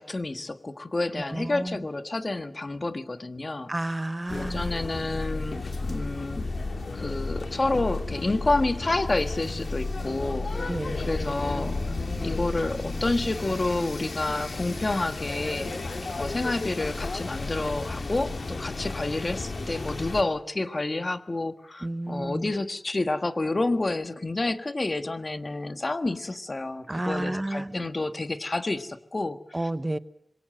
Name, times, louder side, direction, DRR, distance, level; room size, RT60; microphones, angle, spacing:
voice 1, 0.0-3.7 4.3-6.5 6.9-11.8 12.2-15.7 16.2-29.4, left 2 dB, 40° left, 10 dB, 1.5 m, -29 dB
voice 2, 1.2-1.8 3.7-4.7 10.7-11.1 21.8-22.5 26.9-27.9 29.5-30.0, right 1 dB, 20° right, 14 dB, 0.9 m, -31 dB
sound 1, 4.3-20.2, left 3 dB, 65° left, 2.9 m, -33 dB
Water / Sink (filling or washing), 11.0-19.6, right 1 dB, 5° right, 6.8 m, -55 dB
26.5 x 22.5 x 7.6 m, 0.75 s
wide cardioid pair, 80°, 0 cm